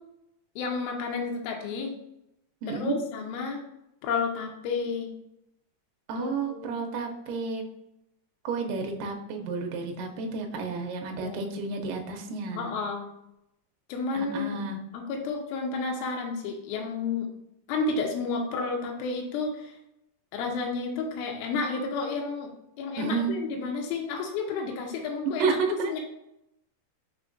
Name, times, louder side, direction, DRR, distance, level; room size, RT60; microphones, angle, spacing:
voice 1, 0.6-1.9 2.7-3.6 4.0-5.1 6.2-6.7 11.2-11.4 12.6-13.1 13.9-14.6 14.9-17.3 17.7-19.7 20.3-22.5 22.8-25.6 25.9-26.0, left 4 dB, 80° left, 1 dB, 2.3 m, -31 dB
voice 2, 2.6-3.0 6.1-7.6 8.5-12.7 14.1-14.8 23.0-23.3 25.4-26.0, right 4 dB, 85° right, 3 dB, 1.9 m, -31 dB
5.5 x 3.5 x 2.5 m, 0.84 s
omnidirectional pair, 4.5 m